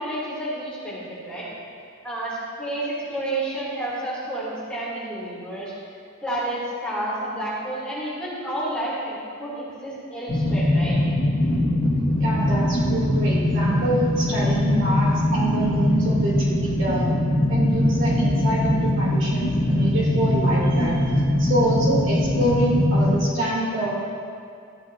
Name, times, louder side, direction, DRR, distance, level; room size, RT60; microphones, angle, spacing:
voice 1, 0.0-1.5 2.0-5.7 6.2-11.0, right 1 dB, 5° left, -9 dB, 2.7 m, -30 dB
sound 1, 10.3-23.1, left 1 dB, 40° left, 1.1 m, -22 dB
voice 2, 12.2-17.1 17.5-21.1 21.4-23.9, right 1 dB, 60° right, -7 dB, 2.9 m, -25 dB
14.0 x 10.5 x 2.7 m, 2.3 s
head